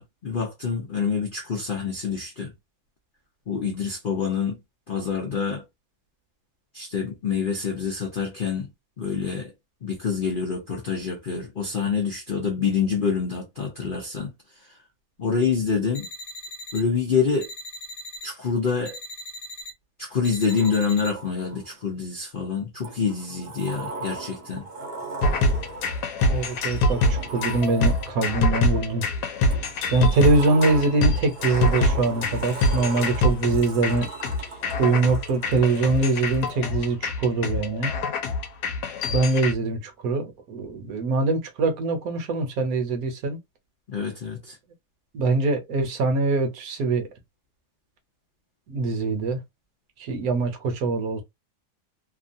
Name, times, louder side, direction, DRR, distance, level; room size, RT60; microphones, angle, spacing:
voice 1, 0.0-2.5 3.5-4.6 4.9-5.6 6.7-8.7 9.0-9.5 9.8-14.3 14.6-14.8 15.2-16.1 16.7-17.5 18.2-19.0 20.0-24.7 43.9-44.6, left 6 dB, 55° left, 0.5 m, -26 dB
sound 1, 15.9-16.8 17.4-18.3 18.8-19.7 20.2-21.1, left 1 dB, 40° left, 0.9 m, -39 dB
Sliding door, 20.5-21.9 22.8-28.4 29.5-36.6, right 3 dB, 45° right, 0.9 m, -39 dB
sound 2, 25.2-39.5, left 2 dB, 80° left, 1.2 m, -25 dB
voice 2, 26.3-29.1 29.9-34.1 34.8-37.9 39.1-43.4 45.1-47.1 48.7-49.4 50.0-51.2, right 3 dB, 65° right, 1.2 m, -23 dB
2.9 x 2.3 x 2.6 m
omnidirectional pair, 1.8 m